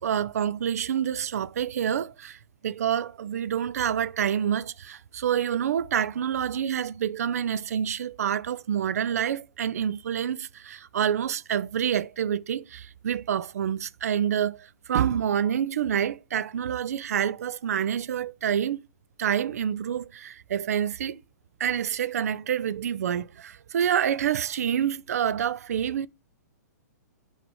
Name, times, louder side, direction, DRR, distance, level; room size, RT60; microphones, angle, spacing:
voice 1, 0.0-18.8 19.2-21.2 21.6-26.1, right 9 dB, 60° right, 0.6 m, -27 dB
9.2 x 5.0 x 5.6 m
figure-of-eight pair, 115°, 9 cm